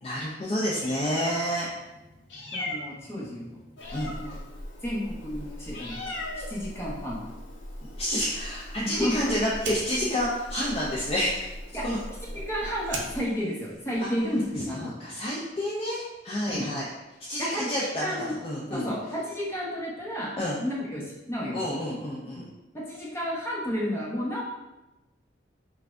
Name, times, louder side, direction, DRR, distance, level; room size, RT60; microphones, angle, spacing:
voice 1, 0.0-1.7 3.9-4.1 8.0-11.5 11.8-12.0 14.0-14.1 14.7-16.9 17.2-18.9 20.4-20.6 21.5-22.5, equal, 30° left, -5 dB, 0.5 m, -29 dB
Meow, 0.6-13.2, left 1 dB, 75° left, 0.8 m, -40 dB
voice 2, 2.5-3.6 4.2-4.3 4.8-7.2 8.8-9.1 11.7-11.8 12.5-14.9 16.5-16.6 17.4-18.3 18.7-20.3 20.6-21.6 22.3-22.4 22.7-24.4, equal, 15° left, -6 dB, 1.0 m, -32 dB
Fire, 8.0-14.8, right 3 dB, 70° right, 0.6 m, -44 dB
5.7 x 2.3 x 2.5 m, 1.0 s
head